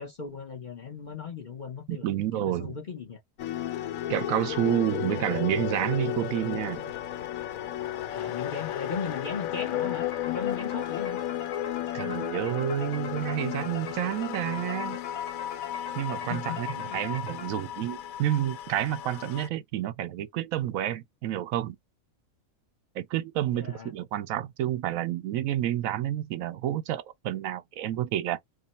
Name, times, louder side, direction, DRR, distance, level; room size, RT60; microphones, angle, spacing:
voice 1, 0.0-2.1 2.3-3.2 8.1-11.2 16.3-17.0 23.5-23.9, left 5 dB, 45° left, 0.7 m, -37 dB
voice 2, 1.9-2.8 4.1-6.9 11.9-15.0 15.9-21.8 23.0-28.4, right 12 dB, 85° right, 1.0 m, -29 dB
sound 1, 3.4-19.5, left 12 dB, 85° left, 1.1 m, -34 dB
sound 2, 10.0-17.9, left 7 dB, 60° left, 1.0 m, -44 dB
3.6 x 2.0 x 3.9 m
omnidirectional pair, 1.4 m